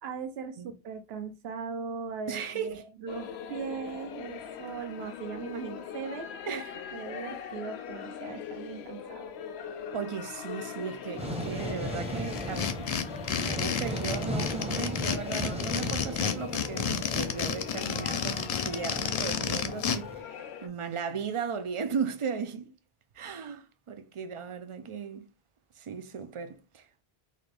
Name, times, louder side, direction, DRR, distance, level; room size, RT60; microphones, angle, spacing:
voice 1, 0.0-6.6 6.9-9.3, right 5 dB, 75° right, 0.9 m, -39 dB
voice 2, 2.3-2.8 6.5-6.8 9.9-12.9 13.4-22.7 23.2-25.3 25.8-27.0, right 6 dB, 50° right, 0.4 m, -36 dB
sound 1, 3.1-20.7, left 8 dB, 90° left, 0.9 m, -41 dB
sound 2, 11.2-20.2, equal, 5° right, 0.7 m, -37 dB
sound 3, 12.3-20.0, left 7 dB, 55° left, 0.4 m, -31 dB
4.0 x 2.5 x 3.3 m
omnidirectional pair, 1.0 m